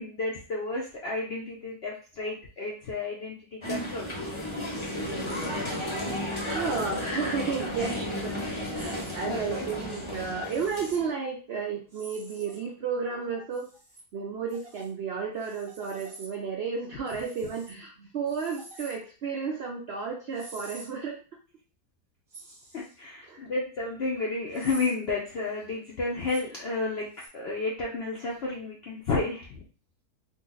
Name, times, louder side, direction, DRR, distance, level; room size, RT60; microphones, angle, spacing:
voice 1, 0.0-4.1 8.4-8.5 9.3-9.6 22.7-27.1 27.3-29.6, left 3 dB, 70° left, -2 dB, 0.6 m, -32 dB
sound 1, 3.6-11.1, left 1 dB, 25° left, 0.8 m, -33 dB
voice 2, 6.4-13.7 14.1-21.2 23.2-23.5, right 5 dB, 90° right, 0 dB, 0.5 m, -33 dB
sound 2, 8.8-9.1 10.4-11.0 11.9-12.7 13.5-14.0 14.5-14.9 15.4-16.3 17.1-17.7 18.3-19.0 20.3-20.9 22.3-23.0 24.5-24.9 26.2-26.4 27.1-27.3, right 2 dB, 30° right, 0.7 m, -47 dB
2.7 x 2.6 x 3.8 m, 0.38 s
omnidirectional pair, 1.8 m